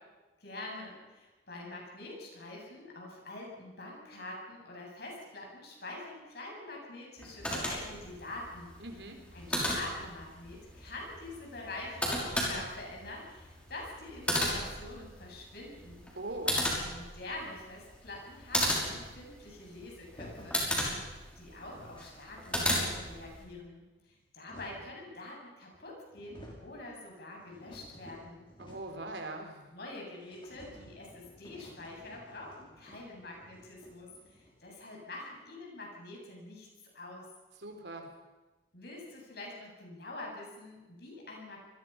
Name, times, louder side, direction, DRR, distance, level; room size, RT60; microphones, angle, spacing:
voice 1, 0.4-8.8 9.3-16.1 16.9-20.6 21.0-28.5 29.7-36.7 36.9-37.3 38.7-41.6, left 2 dB, 55° left, -1 dB, 8.0 m, -45 dB
sound 1, 7.2-23.4, equal, 5° left, 5.7 m, -35 dB
voice 2, 8.8-9.2 16.2-16.6 28.6-29.7 37.6-38.1, right 2 dB, 65° right, 4 dB, 3.9 m, -41 dB
sound 2, 20.1-20.6 21.3-21.4 21.5-22.1 22.5-23.3 24.0-25.0 25.7-25.8 26.1-26.7 27.1-29.1 29.3-29.4 29.7-29.8 30.2-34.7, equal, 25° left, 5.2 m, -53 dB
28.0 x 21.0 x 5.9 m, 1.2 s
head